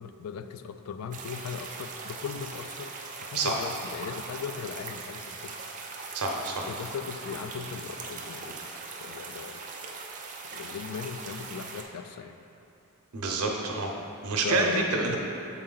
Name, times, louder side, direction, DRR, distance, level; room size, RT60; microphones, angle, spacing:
voice 1, 0.0-2.9 3.2-5.5 6.7-8.6 9.0-9.7 10.5-12.4 14.4-15.2, left 6 dB, 75° left, 10 dB, 0.3 m, -38 dB
sound 1, 1.1-11.8, right 4 dB, 35° right, 0.5 m, -40 dB
voice 2, 6.1-6.7 13.1-13.9 14.2-15.2, right 3 dB, 85° right, 1 dB, 0.8 m, -28 dB
6.9 x 4.3 x 3.8 m, 2.7 s
head